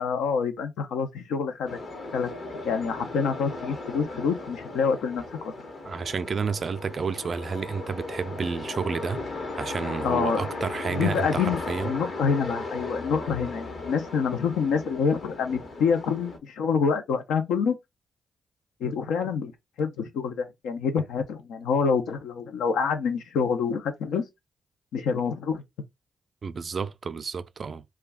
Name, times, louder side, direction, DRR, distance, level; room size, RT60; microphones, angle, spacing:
voice 1, 0.0-1.8 2.1-2.3 2.6-5.5 10.0-10.4 10.9-17.8 18.8-19.5 19.8-24.2 24.9-25.6, left 6 dB, 85° left, 0.5 m, -27 dB
sound 1, 1.7-16.4, left 2 dB, 60° left, 1.0 m, -36 dB
voice 2, 5.8-9.2 9.6-11.9 26.4-27.8, right 5 dB, 55° right, 0.3 m, -30 dB
2.3 x 2.2 x 3.5 m
supercardioid pair, 45°, 0 cm